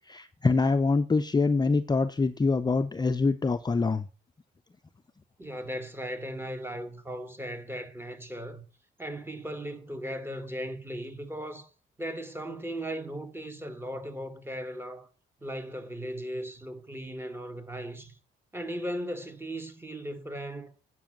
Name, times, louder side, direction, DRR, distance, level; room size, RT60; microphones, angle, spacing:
voice 1, 0.1-4.0, left 4 dB, 20° left, 0.6 m, -25 dB
voice 2, 5.4-8.6 9.0-11.7 12.0-15.1 15.4-18.1 18.5-20.7, equal, 10° right, 1.8 m, -37 dB
9.0 x 6.1 x 7.6 m
cardioid pair, 90°, 20 cm